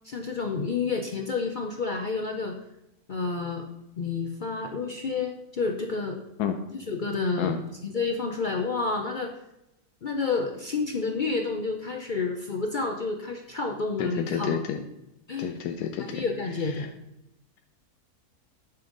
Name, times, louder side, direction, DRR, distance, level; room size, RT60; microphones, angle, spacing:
voice 1, 0.0-2.6 3.1-3.7 4.0-6.2 6.9-7.5 7.8-9.3 10.0-14.6 15.3-15.5 16.1-16.9, left 4 dB, 60° left, 3 dB, 0.5 m, -29 dB
voice 2, 14.0-14.8 15.4-16.2 16.8-16.9, left 8 dB, 85° left, 6 dB, 1.2 m, -30 dB
9.5 x 5.3 x 3.8 m, 0.86 s
omnidirectional pair, 1.7 m